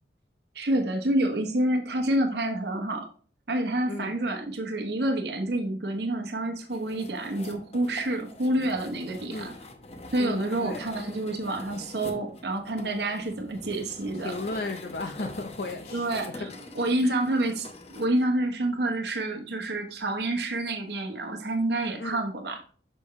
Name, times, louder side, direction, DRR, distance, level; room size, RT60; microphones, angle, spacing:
voice 1, 0.5-3.0 3.5-9.5 10.1-14.3 15.9-16.5 16.7-22.6, right 1 dB, 60° right, 4 dB, 1.0 m, -28 dB
sound 1, 6.7-18.1, left 2 dB, 35° left, 0.9 m, -44 dB
voice 2, 10.2-10.9 14.2-16.1 17.0-17.2 22.0-22.2, left 2 dB, 55° left, 4 dB, 0.6 m, -35 dB
6.7 x 5.3 x 3.2 m, 0.42 s
head